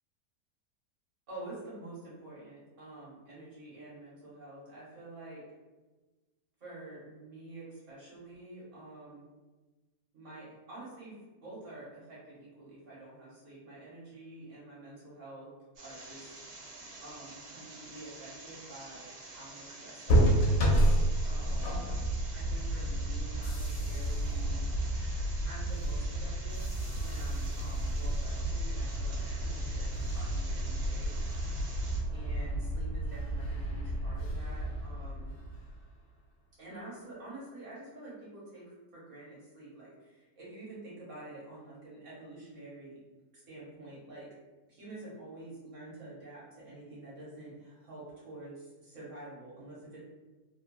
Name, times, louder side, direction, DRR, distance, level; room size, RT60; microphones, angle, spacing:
voice 1, 1.3-5.4 6.6-9.3 10.1-15.5 15.8-16.3 17.0-20.5 21.2-21.8 22.3-24.7 25.4-31.2 32.1-35.3 36.6-43.0 43.3-44.3 44.7-50.0, right 2 dB, 50° right, -8 dB, 1.5 m, -48 dB
sound 1, 15.8-32.0, right 2 dB, 85° right, 0.5 m, -48 dB
sound 2, 20.1-35.8, right 1 dB, 70° left, 1.0 m, -31 dB
3.3 x 2.3 x 2.2 m, 1.2 s
omnidirectional pair, 1.7 m